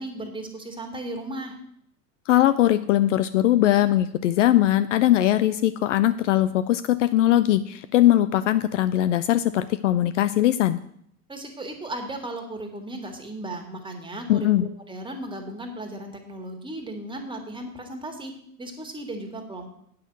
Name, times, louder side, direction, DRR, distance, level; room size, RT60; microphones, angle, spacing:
voice 1, 0.0-1.6 11.3-18.3 18.6-19.7, right 1 dB, 10° right, 3 dB, 1.9 m, -36 dB
voice 2, 2.3-10.8 14.3-14.7, left 13 dB, 55° left, 12 dB, 0.6 m, -20 dB
9.0 x 5.7 x 7.9 m, 0.68 s
figure-of-eight pair, 80°, 46 cm